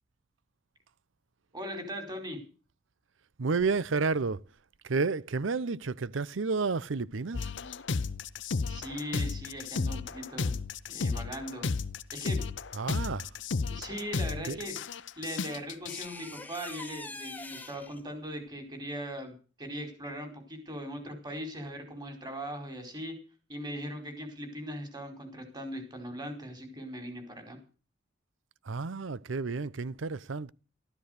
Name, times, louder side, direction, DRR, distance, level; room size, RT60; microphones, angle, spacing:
voice 1, 1.5-2.4 8.7-10.5 10.9-11.7 12.1-12.5 13.7-14.8 15.2-23.1 23.5-27.6, equal, 25° right, 4.8 m, -39 dB
voice 2, 3.4-4.4 4.8-7.5 12.7-13.3 14.4-14.6 28.6-30.5, right 4 dB, 90° right, 0.7 m, -31 dB
sound 1, 7.3-16.1, left 4 dB, 70° left, 0.7 m, -33 dB
sound 2, 14.6-14.7 15.9-18.0, left 3 dB, 10° left, 1.3 m, -44 dB
13.5 x 13.0 x 6.6 m
head